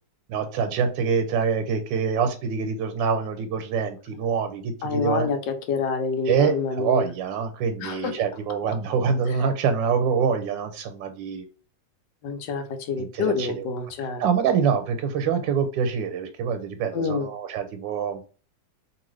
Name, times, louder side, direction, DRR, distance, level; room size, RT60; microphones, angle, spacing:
voice 1, 0.3-5.3 6.3-11.4 13.0-13.7 14.2-18.2, right 6 dB, 90° right, 7 dB, 1.3 m, -25 dB
voice 2, 4.8-7.1 7.8-8.1 12.2-14.2 16.9-17.3, left 5 dB, 80° left, 6 dB, 1.3 m, -27 dB
2.8 x 2.7 x 3.1 m, 0.37 s
omnidirectional pair, 2.0 m